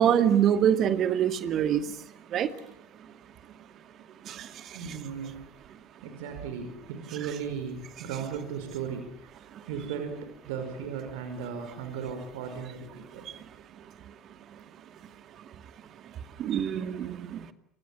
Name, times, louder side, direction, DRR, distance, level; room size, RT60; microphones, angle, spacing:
voice 1, 0.0-1.8 2.3-2.5 16.4-17.4, right 9 dB, 40° right, 10 dB, 2.4 m, -24 dB
voice 2, 4.7-5.5 6.0-13.3, right 6 dB, 60° right, 7 dB, 5.1 m, -37 dB
29.0 x 27.0 x 7.5 m, 0.72 s
figure-of-eight pair, 70°, 0 cm